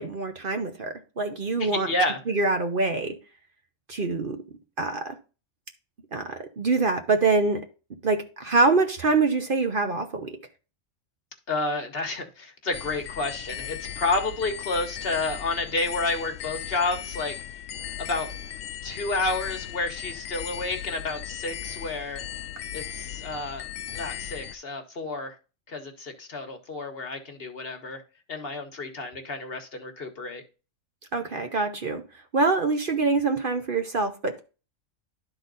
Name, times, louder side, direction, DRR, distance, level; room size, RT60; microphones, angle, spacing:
voice 1, 0.0-1.9 2.3-3.2 3.9-4.4 4.8-5.2 6.1-7.6 8.0-10.4 31.1-32.0 32.3-34.4, right 3 dB, 45° right, 0.9 m, -25 dB
voice 2, 1.6-2.2 11.5-17.4 18.0-18.3 18.8-22.2 22.7-23.7 23.9-25.3 25.7-28.0 28.3-30.4, left 2 dB, 50° left, 1.3 m, -30 dB
sound 1, 12.7-24.6, left 10 dB, 80° left, 1.0 m, -37 dB
11.5 x 4.0 x 4.0 m
omnidirectional pair, 1.3 m